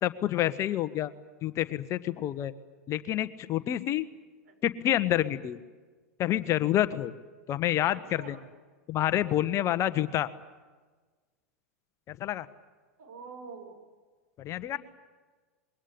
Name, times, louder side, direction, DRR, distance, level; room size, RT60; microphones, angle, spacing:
voice 1, 0.0-1.1 1.4-2.5 2.9-4.1 4.6-5.6 6.2-7.1 7.5-8.4 8.9-10.3 12.1-12.5 14.4-14.8, left 12 dB, 40° left, 13 dB, 1.3 m, -28 dB
voice 2, 7.9-8.4 13.0-13.8 14.7-14.8, right 5 dB, 70° right, 5 dB, 6.1 m, -46 dB
26.0 x 22.5 x 8.7 m, 1.3 s
hypercardioid pair, 95°, 8 cm